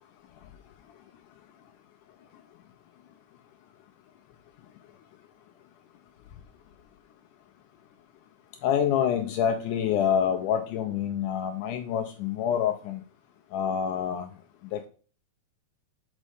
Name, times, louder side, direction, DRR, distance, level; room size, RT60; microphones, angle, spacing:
voice 1, 8.6-13.0 13.5-14.3 14.7-14.9, left 8 dB, 85° left, 6 dB, 1.8 m, -27 dB
6.5 x 5.3 x 4.9 m, 0.39 s
omnidirectional pair, 4.3 m